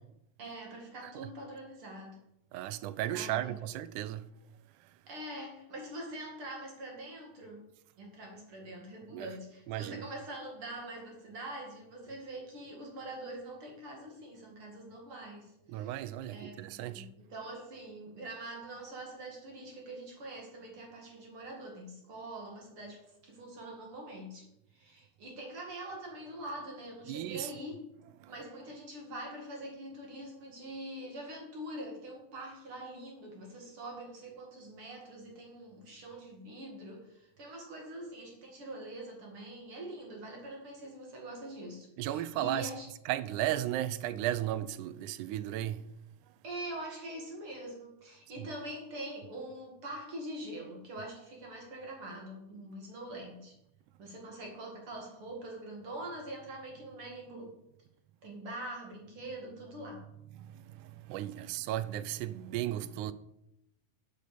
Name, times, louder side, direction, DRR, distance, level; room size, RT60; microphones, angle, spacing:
voice 1, 0.4-2.2 3.0-3.6 5.1-7.7 8.0-16.0 16.3-24.5 24.7-27.8 28.3-42.9 46.4-53.5 54.0-57.6 58.2-60.0 61.4-61.5, right 1 dB, 45° right, 2.8 m, -44 dB
voice 2, 2.5-4.2 9.1-9.3 9.7-10.0 15.7-17.1 27.1-27.5 28.2-28.3 42.0-42.7 43.1-45.8 48.4-48.5 60.4-63.1, right 13 dB, 85° right, 2.1 m, -35 dB
8.4 x 7.7 x 7.0 m
omnidirectional pair, 3.6 m